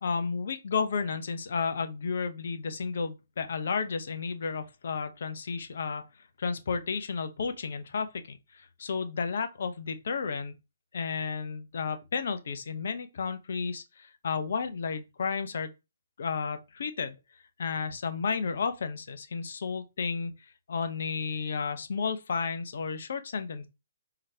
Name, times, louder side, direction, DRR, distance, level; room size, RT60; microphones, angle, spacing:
voice 1, 0.0-6.1 6.4-10.6 10.9-15.7 16.2-17.1 17.6-20.3 20.7-23.7, left 5 dB, 65° left, 0.8 m, -32 dB
4.7 x 3.9 x 2.8 m
figure-of-eight pair, 135°, 0 cm